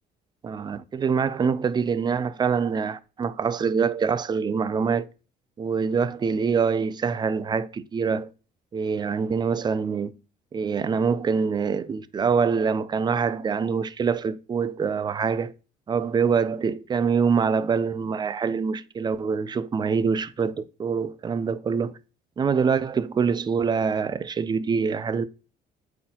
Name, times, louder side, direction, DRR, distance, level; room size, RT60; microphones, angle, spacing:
voice 1, 0.4-5.1 5.6-8.3 8.7-10.1 10.5-15.5 15.9-21.9 22.4-25.3, right 6 dB, 25° right, 0.4 m, -25 dB
8.4 x 4.2 x 2.9 m
cardioid pair, 110°, 17 cm